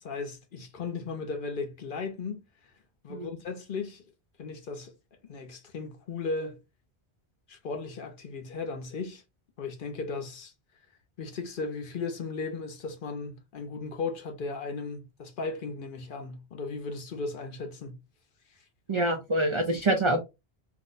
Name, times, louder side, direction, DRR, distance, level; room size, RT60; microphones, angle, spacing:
voice 1, 0.0-2.4 3.0-4.0 4.4-4.9 5.3-6.6 7.5-9.2 9.6-10.5 11.2-18.0, left 4 dB, 55° left, 0.8 m, -36 dB
voice 2, 18.9-20.2, right 1 dB, 55° right, 0.3 m, -26 dB
2.6 x 2.1 x 3.8 m
omnidirectional pair, 1.1 m